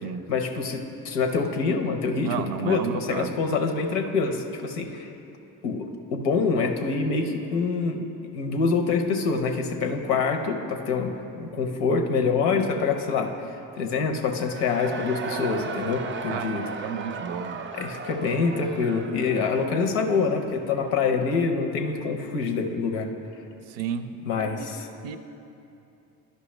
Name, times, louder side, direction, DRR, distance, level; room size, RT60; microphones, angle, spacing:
voice 1, 0.0-5.1 5.6-5.8 6.1-8.0 8.3-13.3 13.8-16.7 17.7-23.1 24.2-24.9, left 4 dB, 90° left, 5 dB, 0.7 m, -26 dB
voice 2, 2.2-3.3 16.3-16.5 16.8-17.7 23.7-24.1 24.6-24.7 25.0-25.2, right 8 dB, 75° right, 10 dB, 0.6 m, -31 dB
Cheering / Crowd, 14.3-21.0, right 4 dB, 30° right, 0.4 m, -36 dB
11.5 x 5.4 x 3.1 m, 2.8 s
hypercardioid pair, 55°, 44 cm